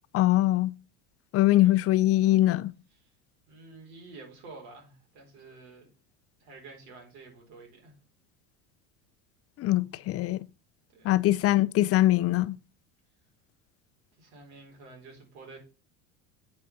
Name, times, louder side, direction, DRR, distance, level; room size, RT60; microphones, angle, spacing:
voice 1, 0.1-0.7 1.3-2.7 9.6-10.5 11.0-12.6, left 15 dB, 45° left, 0.6 m, -22 dB
voice 2, 3.5-5.9 6.4-7.9 10.9-11.1 14.2-15.6, right 3 dB, 80° right, 4.1 m, -49 dB
8.3 x 5.1 x 5.2 m
supercardioid pair, 105°, 33 cm